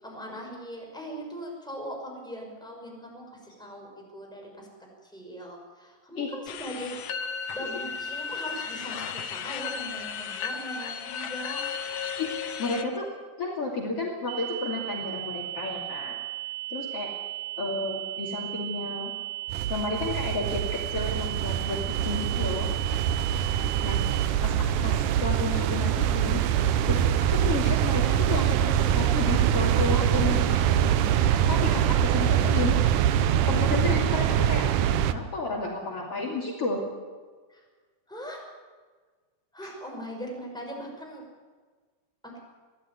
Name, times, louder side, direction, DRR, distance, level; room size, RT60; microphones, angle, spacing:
voice 1, 0.0-3.3 3.6-4.7 5.0-7.0 7.2-11.6 23.4-23.7 32.0-32.6 37.5-37.6 38.1-38.4 39.5-41.2 42.2-42.4, equal, ahead, -1 dB, 6.1 m, -40 dB
sound 1, 6.5-12.9, left 6 dB, 85° left, 2.7 m, -34 dB
voice 2, 12.2-13.1 13.4-16.2 16.7-17.1 17.6-19.1 19.7-22.7 23.8-24.0 24.4-26.4 26.9-27.0 27.3-31.0 31.5-32.8 33.5-34.7 35.1-36.8 39.6-39.7, left 3 dB, 50° left, -2 dB, 3.5 m, -32 dB
sound 2, 14.3-24.3, right 16 dB, 65° right, 1.6 m, -36 dB
sound 3, 19.5-35.1, right 10 dB, 90° right, 2.4 m, -24 dB
22.5 x 15.5 x 9.6 m, 1.5 s
omnidirectional pair, 3.5 m